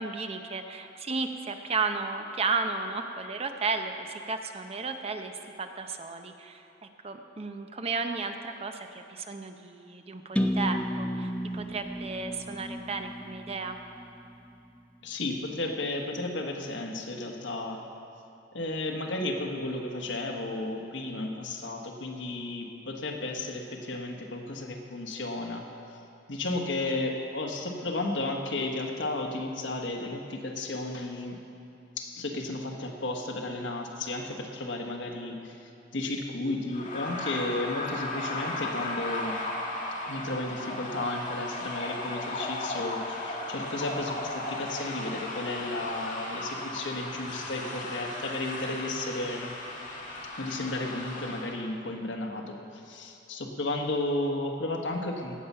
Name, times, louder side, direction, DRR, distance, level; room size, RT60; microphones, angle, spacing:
voice 1, 0.0-5.3 5.6-13.8, right 4 dB, 35° right, 6 dB, 0.6 m, -34 dB
sound 1, 10.4-14.2, equal, 5° left, 0.5 m, -32 dB
voice 2, 15.0-17.8 18.5-25.7 26.3-31.4 32.0-39.4 40.1-49.5 50.4-55.4, left 2 dB, 75° left, 2 dB, 1.4 m, -33 dB
sound 2, 36.7-51.5, left 2 dB, 45° left, 1.9 m, -36 dB
17.5 x 7.3 x 5.6 m, 2.6 s
head